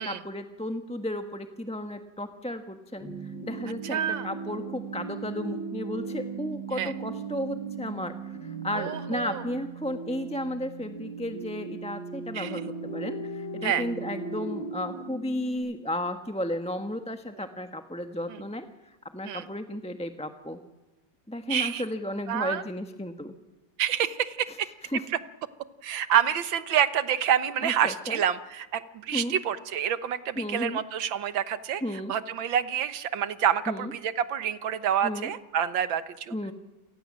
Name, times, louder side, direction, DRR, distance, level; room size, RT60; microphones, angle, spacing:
voice 1, 0.0-20.6 21.3-23.3 24.5-24.6 24.8-25.0 27.6-28.2 29.1-29.3 30.4-30.8 31.8-32.1 33.7-33.9 35.0-35.3 36.3-36.5, left 1 dB, 5° left, 7 dB, 1.0 m, -34 dB
sound 1, 3.0-15.5, right 4 dB, 85° left, 6.3 m, -37 dB
voice 2, 3.8-4.3 6.8-6.9 8.7-9.4 12.3-12.5 13.6-13.8 18.3-18.4 19.2-19.5 21.5-21.8 22.3-22.6 23.8-24.7 25.8-31.8 32.1-36.3, right 9 dB, 85° right, 13 dB, 1.9 m, -27 dB
27.5 x 19.0 x 7.5 m, 1.1 s
omnidirectional pair, 2.1 m